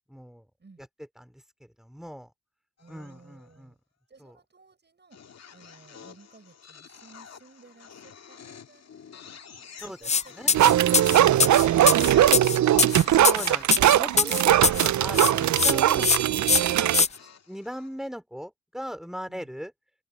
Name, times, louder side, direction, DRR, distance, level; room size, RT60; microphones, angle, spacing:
voice 1, 0.1-0.4 1.2-2.3 2.9-3.7 4.2-4.4 9.8-10.1 10.4-10.5 13.0-17.0 17.5-19.7, equal, ahead, 4.1 m, -38 dB
sound 1, 2.8-3.6 5.1-18.1, left 7 dB, 50° left, 2.1 m, -48 dB
voice 2, 2.8-3.8 4.1-5.2 5.5-12.7 19.3-19.5, right 4 dB, 30° right, 7.4 m, -56 dB
sound 2, 10.0-10.2 10.5-14.9 15.1-15.7 16.0-16.2 16.5-17.1, left 5 dB, 20° left, 0.5 m, -22 dB
sound 3, 10.5-17.0, right 12 dB, 55° right, 0.6 m, -20 dB
cardioid pair, 75°, 34 cm